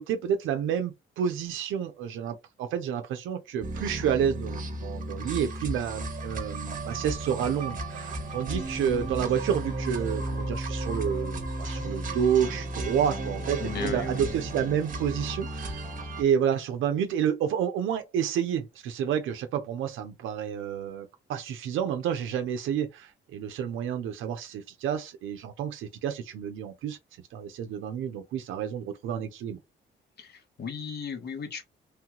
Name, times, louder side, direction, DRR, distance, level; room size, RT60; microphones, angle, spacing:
voice 1, 0.0-15.8 16.2-27.0 27.3-29.6, right 8 dB, 85° right, 0.6 m, -29 dB
sound 1, 3.6-16.2, right 2 dB, 45° right, 0.9 m, -34 dB
voice 2, 13.6-14.3 30.2-31.7, left 5 dB, 55° left, 1.1 m, -36 dB
3.2 x 2.3 x 2.9 m
cardioid pair, 90°, 20 cm